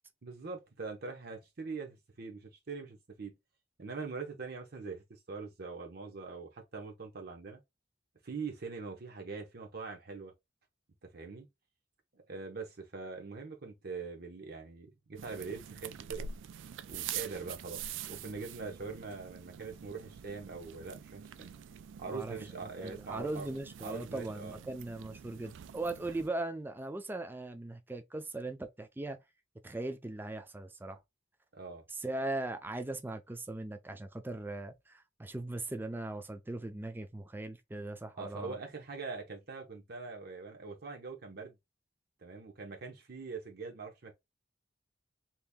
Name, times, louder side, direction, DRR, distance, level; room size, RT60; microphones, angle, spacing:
voice 1, 0.2-3.3 3.8-7.6 8.2-10.3 11.1-11.5 12.1-16.3 16.9-21.5 22.0-23.5 23.8-24.6 31.5-31.8 38.1-41.5 42.2-44.1, right 4 dB, 55° right, 0.8 m, -43 dB
sound 1, 15.2-26.3, right 8 dB, 90° right, 0.3 m, -46 dB
voice 2, 22.1-29.2 29.6-31.0 31.9-38.6, right 2 dB, 10° right, 0.4 m, -39 dB
2.9 x 2.5 x 3.5 m
head